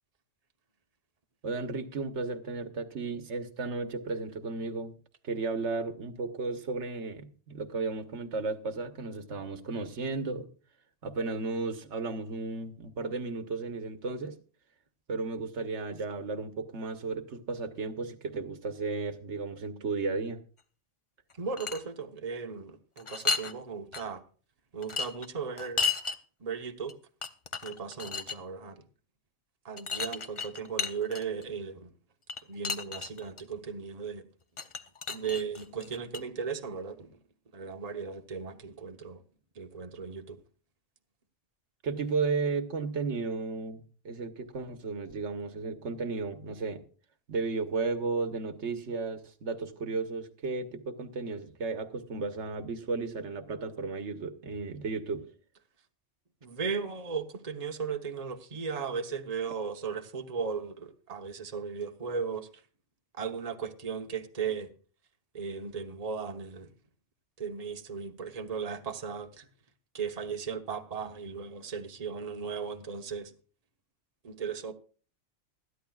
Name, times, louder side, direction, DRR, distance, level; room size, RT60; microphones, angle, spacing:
voice 1, 1.4-5.0 5.2-10.5 11.0-14.4 15.1-20.4 41.8-46.8 47.3-55.3, right 4 dB, 85° right, 1.4 m, -34 dB
sound 1, 21.3-21.8 23.0-23.5 23.9-24.0 24.8-26.2 26.9-27.0 27.2-28.4 29.8-31.4 32.3-33.4 34.6-36.2, left 5 dB, 30° left, 0.7 m, -33 dB
voice 2, 21.4-24.2 24.7-25.8 26.4-26.9 27.6-28.8 29.6-31.9 32.5-34.2 35.1-37.2 37.5-39.2 39.6-40.4 56.4-62.5 63.2-64.7 65.3-66.7 67.4-69.5 69.9-73.3 74.2-74.7, right 6 dB, 35° right, 1.1 m, -36 dB
20.0 x 13.0 x 2.4 m
omnidirectional pair, 1.2 m